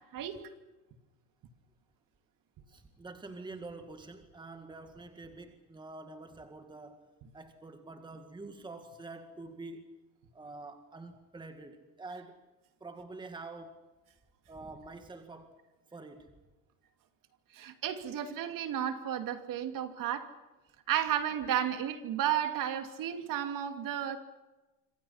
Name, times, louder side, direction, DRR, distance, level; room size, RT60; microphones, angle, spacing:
voice 1, 2.7-7.1 7.3-10.0 10.3-12.4 12.8-13.8 14.5-15.6 15.9-16.3, right 3 dB, 10° right, 7 dB, 1.9 m, -47 dB
voice 2, 17.5-20.3 20.9-24.2, right 10 dB, 40° right, 7 dB, 2.7 m, -33 dB
26.5 x 26.5 x 5.8 m, 1.1 s
supercardioid pair, 130°, 48 cm